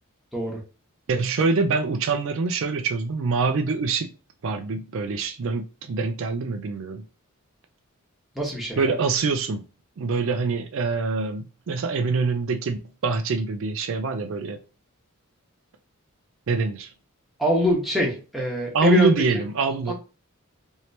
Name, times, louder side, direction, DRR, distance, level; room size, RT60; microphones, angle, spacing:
voice 1, 1.1-4.1 4.4-7.0 8.8-9.6 10.0-14.6 16.5-16.9 18.7-19.9, right 4 dB, 60° right, 0.4 m, -25 dB
voice 2, 8.4-8.9 17.4-19.1 19.9-20.0, left 1 dB, ahead, 0.9 m, -24 dB
2.9 x 2.7 x 3.2 m
head